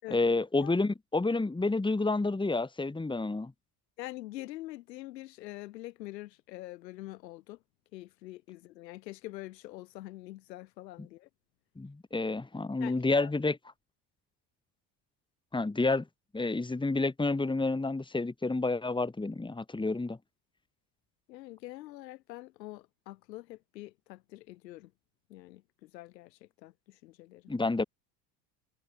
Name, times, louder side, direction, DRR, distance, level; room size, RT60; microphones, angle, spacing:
voice 1, 0.1-3.5 11.8-13.6 15.5-16.0 16.3-20.2 27.5-27.8, left 3 dB, 10° left, 2.6 m, -29 dB
voice 2, 4.0-7.6 7.9-11.3 12.8-13.3 21.3-24.9 25.3-27.4, left 17 dB, 85° left, 5.9 m, -45 dB
supercardioid pair, 90°, 49 cm